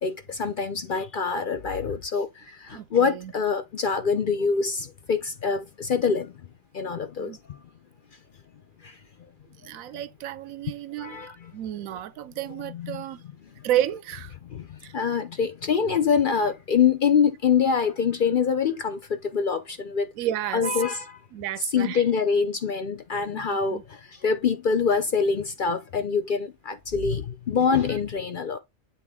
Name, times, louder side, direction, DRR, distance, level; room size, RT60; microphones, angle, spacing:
voice 1, 0.0-6.3 6.7-7.4 8.8-8.9 11.0-11.3 12.7-13.0 14.5-14.7 14.9-20.1 20.5-21.2 21.7-23.8 24.2-28.6, left 6 dB, 55° left, 0.6 m, -25 dB
voice 2, 2.7-3.3 7.2-7.4 9.6-13.2 13.6-14.3 14.8-14.9 20.1-20.8 21.3-22.0 23.3-23.4 23.7-23.8, right 12 dB, 90° right, 1.0 m, -31 dB
7.9 x 3.7 x 3.5 m
omnidirectional pair, 1.4 m